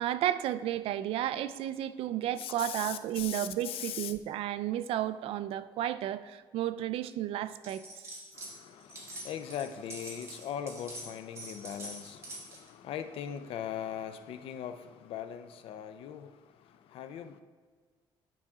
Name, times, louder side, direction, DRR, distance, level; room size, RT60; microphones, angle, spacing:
voice 1, 0.0-7.8, right 12 dB, 75° right, 0.4 m, -32 dB
voice 2, 2.4-4.1 8.3-17.4, left 9 dB, 75° left, 0.5 m, -40 dB
sound 1, 7.6-8.5 8.8-12.7, right 1 dB, 30° right, 1.8 m, -45 dB
10.0 x 5.8 x 3.6 m
cardioid pair, 140°, 10 cm